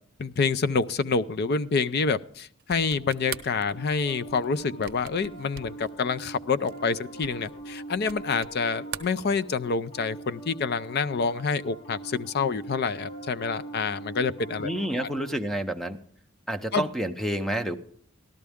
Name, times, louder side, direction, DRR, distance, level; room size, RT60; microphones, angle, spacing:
voice 1, 0.2-14.7 15.0-15.1 16.7-16.8, left 5 dB, 50° left, 13 dB, 0.4 m, -27 dB
sound 1, 2.6-8.6 8.8-9.9, right 8 dB, 50° right, 0.8 m, -42 dB
Piano, 2.9-15.3, right 2 dB, 75° left, 2.8 m, -43 dB
voice 2, 14.6-16.0 16.5-17.8, right 1 dB, ahead, 8 dB, 0.6 m, -29 dB
13.5 x 12.5 x 3.5 m, 0.62 s
head